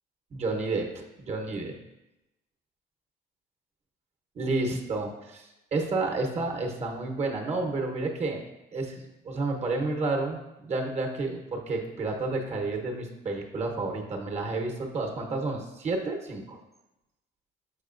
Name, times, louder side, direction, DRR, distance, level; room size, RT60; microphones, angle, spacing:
voice 1, 0.3-1.7 4.3-8.4 8.7-16.6, right 3 dB, 40° right, 2 dB, 1.0 m, -30 dB
6.7 x 6.4 x 2.5 m, 0.97 s
cardioid pair, 110°, 17 cm